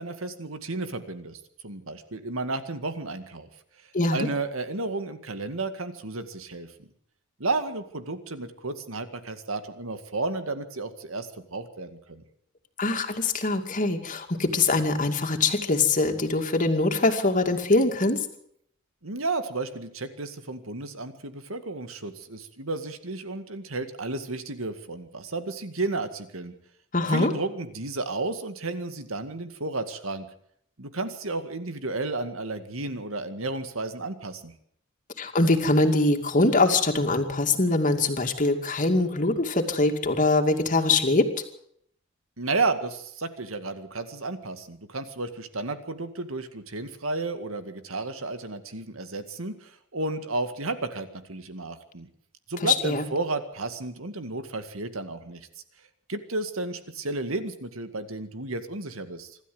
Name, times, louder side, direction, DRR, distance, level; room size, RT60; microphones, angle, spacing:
voice 1, 0.0-3.5 4.1-6.7 7.4-12.2 19.0-26.5 27.1-30.3 30.8-34.5 42.4-52.1 52.5-55.5 56.1-59.4, right 3 dB, 85° right, 10 dB, 2.1 m, -32 dB
voice 2, 3.9-4.3 12.8-18.3 26.9-27.3 35.2-41.3 52.6-53.1, left 2 dB, 40° left, 5 dB, 2.4 m, -23 dB
25.5 x 13.0 x 8.0 m, 0.68 s
head